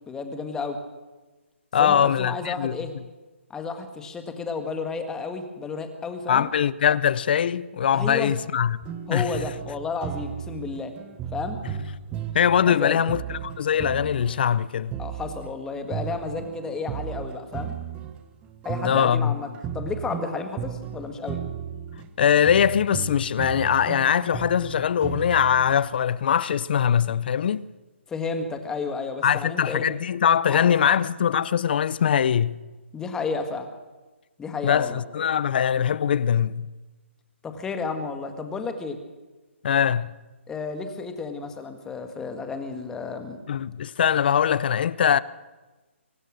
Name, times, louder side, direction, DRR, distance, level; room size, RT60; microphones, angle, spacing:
voice 1, 0.1-0.8 1.8-2.9 3.5-6.5 7.9-8.3 9.1-11.0 11.3-11.6 12.6-13.0 15.0-17.7 18.6-19.5 19.7-21.4 28.1-29.9 30.5-31.0 32.9-33.7 34.4-35.0 37.4-39.0 40.5-43.4, left 4 dB, 10° left, 1.8 m, -32 dB
voice 2, 1.7-2.7 6.3-8.8 9.1-9.2 12.3-14.9 18.8-19.3 22.2-27.7 29.2-32.5 34.6-36.7 39.6-40.1 43.5-45.2, left 8 dB, 45° left, 0.6 m, -22 dB
sound 1, 8.8-15.5 15.9-25.8, right 9 dB, 15° right, 1.1 m, -35 dB
24.0 x 18.0 x 6.5 m
hypercardioid pair, 160°, 7 cm